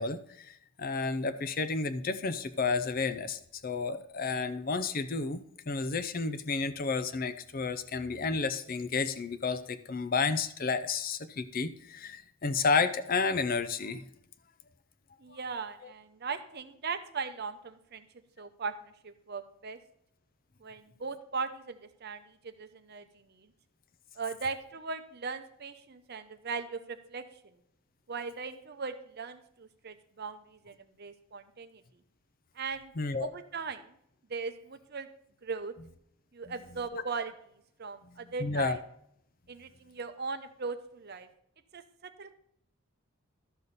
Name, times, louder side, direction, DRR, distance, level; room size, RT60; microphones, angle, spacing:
voice 1, 0.0-14.0 15.3-15.4 33.0-33.3 36.9-37.0 38.4-38.8, left 4 dB, 40° left, 12 dB, 0.6 m, -31 dB
voice 2, 15.2-18.0 18.4-19.8 20.6-23.5 24.2-27.3 28.1-31.8 32.5-32.9 33.2-33.9 34.3-35.1 35.4-35.7 36.3-37.3 37.8-38.8 39.5-41.3 41.7-42.3, right 4 dB, 45° right, 10 dB, 0.7 m, -39 dB
12.0 x 6.9 x 4.1 m, 0.73 s
head